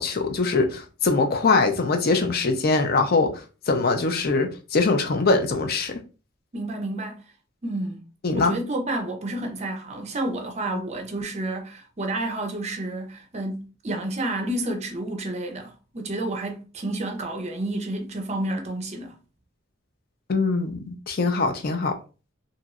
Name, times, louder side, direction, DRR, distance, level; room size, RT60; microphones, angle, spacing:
voice 1, 0.0-3.3 3.7-6.0 8.2-8.5 20.3-22.0, left 3 dB, 50° left, 0.5 m, -22 dB
voice 2, 6.5-7.2 7.6-8.0 8.3-19.2, right 1 dB, 35° right, 0.5 m, -30 dB
3.0 x 2.7 x 2.4 m
head